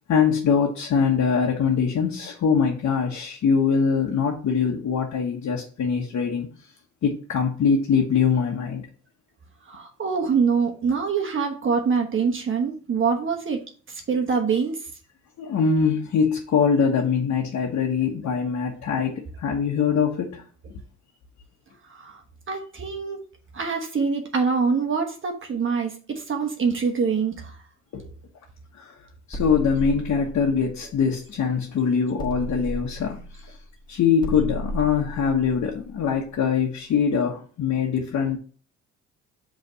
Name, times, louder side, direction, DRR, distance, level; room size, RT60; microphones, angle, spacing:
voice 1, 0.1-6.5 7.0-8.8 15.4-19.1 19.4-20.4 27.9-28.1 28.8-28.9 29.3-33.5 33.9-38.4, left 6 dB, 65° left, 1.3 m, -23 dB
voice 2, 9.7-13.6 13.9-14.8 21.9-22.2 22.5-23.2 23.5-27.5, right 5 dB, 40° right, 1.2 m, -24 dB
sound 1, 29.3-31.7 32.2-36.8, equal, 15° left, 1.7 m, -34 dB
5.4 x 3.4 x 5.6 m
cardioid pair, 90°, 30 cm